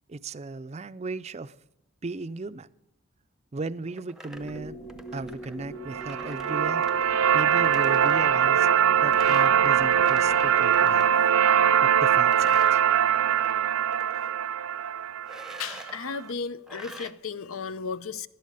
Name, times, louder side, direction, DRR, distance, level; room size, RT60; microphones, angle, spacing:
voice 1, 0.1-1.5 2.0-2.7 3.5-4.8 5.1-6.9 7.3-8.7 9.0-11.2 11.8-12.8, right 3 dB, 30° right, 15 dB, 0.4 m, -36 dB
sound 1, 3.9-11.2 11.6-13.5 13.8-14.3 15.2-16.0 16.7-17.1, right 1 dB, 5° right, 0.7 m, -45 dB
sound 2, 4.3-11.0, equal, 30° left, 1.5 m, -44 dB
sound 3, 5.9-15.9, right 8 dB, 85° right, 0.5 m, -22 dB
voice 2, 15.6-18.3, left 5 dB, 80° left, 15 dB, 0.7 m, -34 dB
18.0 x 12.0 x 5.4 m, 0.84 s
head